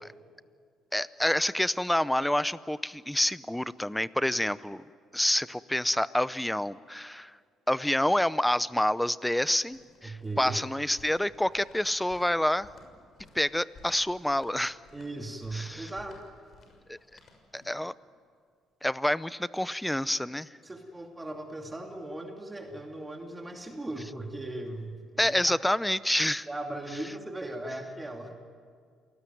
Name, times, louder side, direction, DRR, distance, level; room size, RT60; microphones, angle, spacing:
voice 1, 0.9-4.8 5.1-7.4 7.7-12.7 13.3-14.8 15.5-15.9 16.9-17.0 17.5-17.9 18.8-20.5 25.2-26.5, left 1 dB, 5° left, 17 dB, 0.7 m, -28 dB
sound 1, 9.2-17.9, left 3 dB, 45° left, 6.3 m, -57 dB
voice 2, 10.0-10.6 14.9-16.2 20.6-25.6 26.5-28.3, right 2 dB, 15° right, 2 dB, 2.7 m, -38 dB
28.0 x 19.0 x 9.4 m, 2.1 s
cardioid pair, 105°, 0 cm